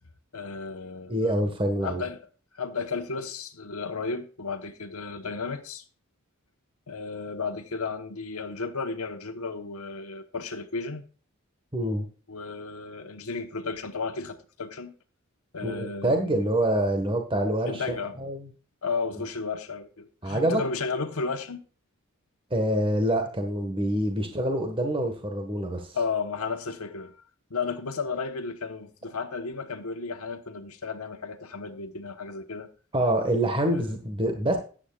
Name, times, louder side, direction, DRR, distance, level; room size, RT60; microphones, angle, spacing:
voice 1, 0.3-1.5 1.8-2.2 2.5-5.8 6.9-11.0 12.3-14.9 15.5-16.3 17.7-18.1 18.8-21.6 24.2-24.3 25.9-27.2 27.5-32.7 33.7-33.9, left 4 dB, 75° left, 1.1 m, -33 dB
voice 2, 1.1-2.0 11.7-12.1 15.6-17.8 18.2-18.5 20.2-20.6 22.5-25.9 32.9-34.6, right 1 dB, 25° right, 1.4 m, -26 dB
14.0 x 10.0 x 2.4 m
head